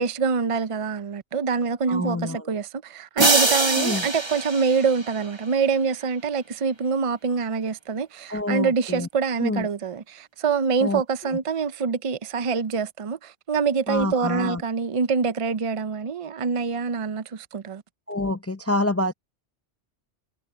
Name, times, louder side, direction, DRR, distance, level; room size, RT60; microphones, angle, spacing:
voice 1, 0.0-17.8, right 5 dB, 45° right, 0.4 m, -25 dB
voice 2, 1.9-2.4 3.8-4.0 8.3-9.1 9.4-9.7 10.8-11.0 13.9-14.6 18.1-19.1, left 1 dB, 20° left, 0.3 m, -26 dB
sound 1, 3.2-5.5, right 2 dB, 25° right, 1.2 m, -23 dB
omnidirectional pair, 1.2 m